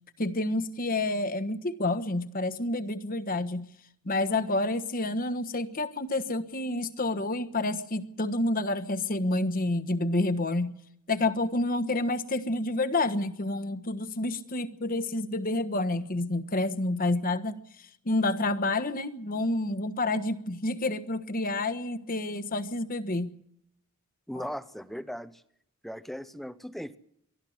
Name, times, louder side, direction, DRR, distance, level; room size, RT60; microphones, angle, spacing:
voice 1, 0.2-3.7 4.0-10.8 11.1-17.6 18.0-23.4 24.3-24.4, left 2 dB, 40° left, 11 dB, 1.3 m, -29 dB
voice 2, 24.3-25.4 25.8-27.0, equal, ahead, 13 dB, 0.8 m, -38 dB
23.5 x 13.5 x 9.4 m, 0.73 s
head